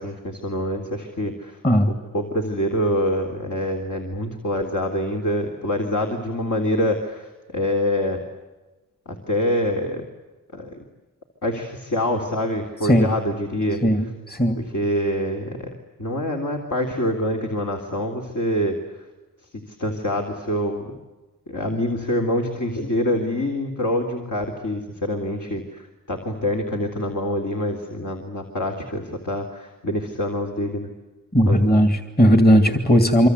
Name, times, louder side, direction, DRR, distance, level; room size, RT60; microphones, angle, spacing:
voice 1, 0.0-1.6 1.9-8.2 9.0-10.0 10.5-10.8 11.4-13.8 14.6-15.7 16.0-19.1 19.7-21.0 21.5-30.9 31.5-31.8, equal, 60° left, 2 dB, 3.5 m, -25 dB
voice 2, 13.8-14.6 31.3-33.3, equal, 30° left, 7 dB, 2.6 m, -17 dB
26.5 x 25.5 x 8.2 m, 1.2 s
wide cardioid pair, 75°, 33 cm